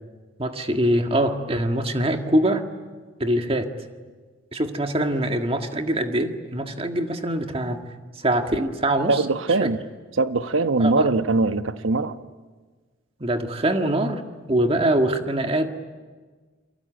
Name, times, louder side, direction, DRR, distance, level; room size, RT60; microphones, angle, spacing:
voice 1, 0.4-2.6 3.2-3.7 4.5-7.8 8.2-9.2 9.6-9.7 10.8-11.1 13.2-14.2 14.5-15.7, right 1 dB, 30° right, 5 dB, 1.7 m, -23 dB
voice 2, 9.1-9.8 10.2-12.2, right 3 dB, 85° right, 11 dB, 1.0 m, -21 dB
29.0 x 23.0 x 9.0 m, 1.4 s
head